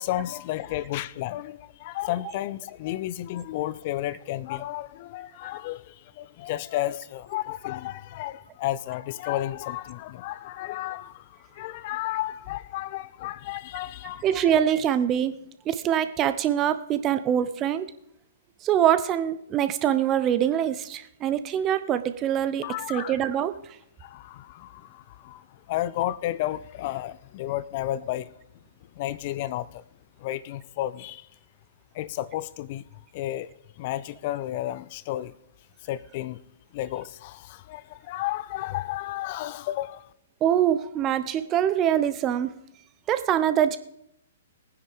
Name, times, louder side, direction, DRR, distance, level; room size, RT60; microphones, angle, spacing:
voice 1, 0.0-14.5 22.6-23.2 24.0-28.3 29.0-29.8 30.2-31.3 31.9-33.5 33.8-35.3 35.8-36.4 36.7-40.1, left 14 dB, 40° left, 0.5 m, -32 dB
voice 2, 14.2-15.4 15.7-17.9 18.6-23.6 40.4-42.5 43.1-43.8, right 10 dB, 25° right, 0.9 m, -24 dB
19.0 x 9.8 x 5.0 m
figure-of-eight pair, 120°, 0 cm